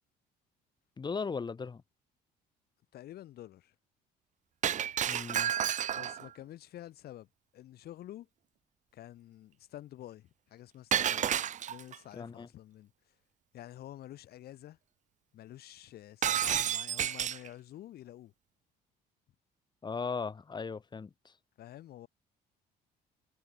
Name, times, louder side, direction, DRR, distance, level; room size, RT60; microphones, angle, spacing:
voice 1, 1.0-1.8 5.1-5.5 12.1-12.5 19.8-21.3, left 5 dB, 25° left, 1.5 m, -37 dB
voice 2, 2.9-3.7 5.9-7.3 7.5-8.3 8.9-11.3 11.7-12.9 13.5-14.8 15.3-18.3 21.6-22.1, left 13 dB, 70° left, 7.8 m, -49 dB
Shatter, 4.6-6.3 10.9-12.0 16.2-17.5, right 10 dB, 45° right, 0.9 m, -30 dB
cardioid pair, 110°, 17 cm